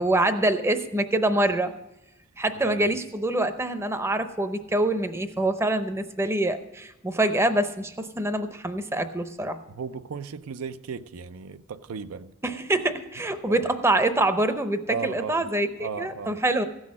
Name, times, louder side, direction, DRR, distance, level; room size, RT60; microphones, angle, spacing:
voice 1, 0.0-1.7 2.4-9.6 12.4-16.6, right 1 dB, 10° right, 9 dB, 0.6 m, -25 dB
voice 2, 2.6-2.9 9.7-12.3 13.5-13.6 14.9-15.5 15.8-16.4, right 5 dB, 85° right, 12 dB, 0.5 m, -35 dB
15.0 x 6.3 x 7.4 m, 0.95 s
head